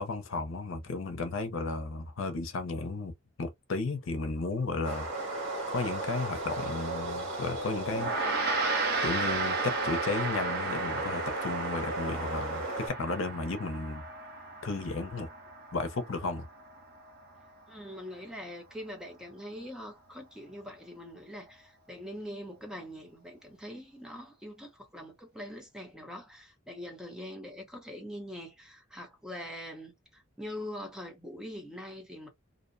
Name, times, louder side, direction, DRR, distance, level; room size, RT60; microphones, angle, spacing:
voice 1, 0.0-3.1 3.4-5.1 5.7-8.1 9.0-14.0 14.6-15.3 15.7-16.5, left 3 dB, 80° left, 0.6 m, -34 dB
sound 1, 4.8-12.9, right 2 dB, 90° right, 1.2 m, -35 dB
Gong, 7.9-17.5, right 4 dB, 55° right, 0.7 m, -34 dB
voice 2, 17.7-32.3, equal, 5° right, 0.7 m, -43 dB
2.6 x 2.1 x 2.6 m
head